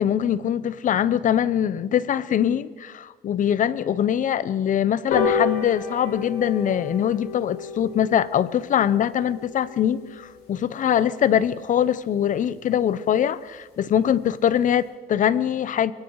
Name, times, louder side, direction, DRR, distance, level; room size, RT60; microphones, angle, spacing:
voice 1, 0.0-15.9, left 9 dB, 50° left, 17 dB, 0.9 m, -23 dB
sound 1, 5.1-11.9 12.3-12.4 12.7-12.8 13.1-13.2 13.5-13.6 13.8-14.1 14.5-14.6, left 5 dB, 65° left, 7.4 m, -31 dB
25.0 x 23.5 x 4.8 m, 1.4 s
cardioid pair, 110°, 17 cm